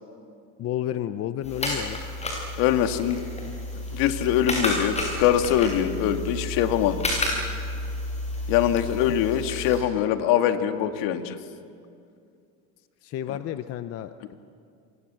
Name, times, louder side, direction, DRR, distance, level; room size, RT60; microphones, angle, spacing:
voice 1, 0.6-2.0 9.1-9.2 13.0-14.3, left 11 dB, 40° left, 10 dB, 0.9 m, -31 dB
sound 1, 1.4-9.8, left 1 dB, 20° left, 7.6 m, -31 dB
voice 2, 2.6-3.2 3.9-7.0 8.5-11.4 13.3-13.4, left 10 dB, 70° left, 7 dB, 2.0 m, -23 dB
28.5 x 25.0 x 7.6 m, 2.4 s
cardioid pair, 140°, 35 cm